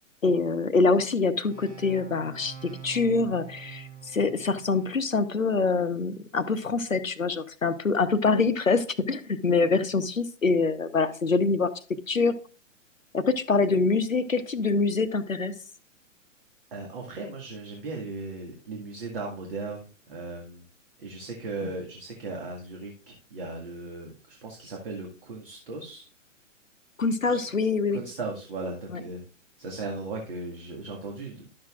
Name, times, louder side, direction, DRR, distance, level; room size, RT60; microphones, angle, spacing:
voice 1, 0.2-11.7 12.1-12.3 13.1-15.5 21.6-21.7 27.0-28.0 28.9-29.0, left 4 dB, 80° left, 11 dB, 1.0 m, -25 dB
sound 1, 1.4-5.1, right 5 dB, 60° right, 2.1 m, -45 dB
voice 2, 16.7-20.6 21.0-26.0 27.3-27.5 27.9-29.2 29.6-31.5, right 3 dB, 45° right, 0 dB, 2.0 m, -37 dB
12.0 x 7.6 x 2.4 m, 0.39 s
figure-of-eight pair, 120°, 39 cm